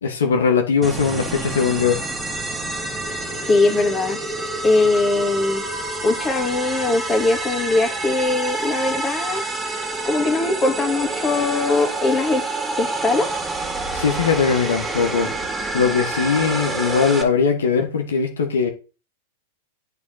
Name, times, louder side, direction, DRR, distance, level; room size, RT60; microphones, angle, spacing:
voice 1, 0.0-2.0 13.9-15.3 15.7-18.7, left 6 dB, 80° left, 1.6 m, -20 dB
sound 1, 0.8-17.2, right 2 dB, 15° right, 1.9 m, -28 dB
voice 2, 3.5-4.2 4.6-5.6 6.0-9.4 10.0-12.4 12.8-13.3, left 3 dB, 25° left, 1.9 m, -20 dB
8.5 x 4.1 x 5.7 m
hypercardioid pair, 105°, 0 cm